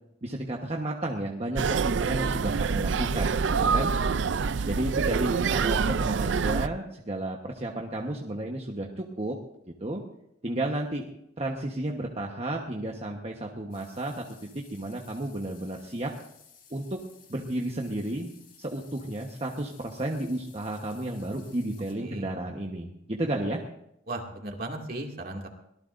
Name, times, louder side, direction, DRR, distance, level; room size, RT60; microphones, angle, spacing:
voice 1, 0.2-3.9 4.7-9.4 9.8-10.0 10.4-11.1 11.4-16.1 16.7-17.0 17.3-18.3 18.6-23.6, right 1 dB, 30° right, 0 dB, 1.2 m, -32 dB
sound 1, 1.6-6.7, right 5 dB, 65° right, 0.4 m, -26 dB
voice 2, 3.6-4.2 22.0-22.3 24.1-25.5, right 2 dB, 50° right, 1 dB, 2.4 m, -37 dB
sound 2, 13.7-21.9, left 7 dB, 50° left, 4.2 m, -56 dB
23.5 x 18.5 x 2.6 m, 0.79 s
head